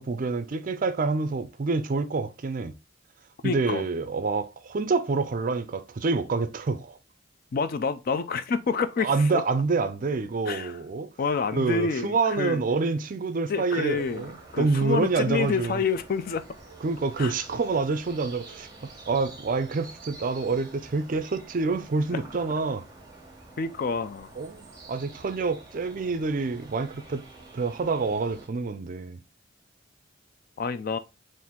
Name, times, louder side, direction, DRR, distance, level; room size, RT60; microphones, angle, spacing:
voice 1, 0.0-2.8 3.4-7.0 9.0-11.1 11.5-15.8 16.8-22.9 24.4-27.2 27.5-29.2, right 4 dB, 45° right, 0.4 m, -27 dB
voice 2, 3.4-3.8 7.5-9.4 10.5-10.8 11.2-12.6 13.5-16.4 17.2-17.3 23.6-24.3 30.6-31.0, left 5 dB, 50° left, 0.4 m, -28 dB
sound 1, 14.0-28.5, right 2 dB, 20° right, 1.2 m, -48 dB
4.3 x 2.6 x 3.6 m
head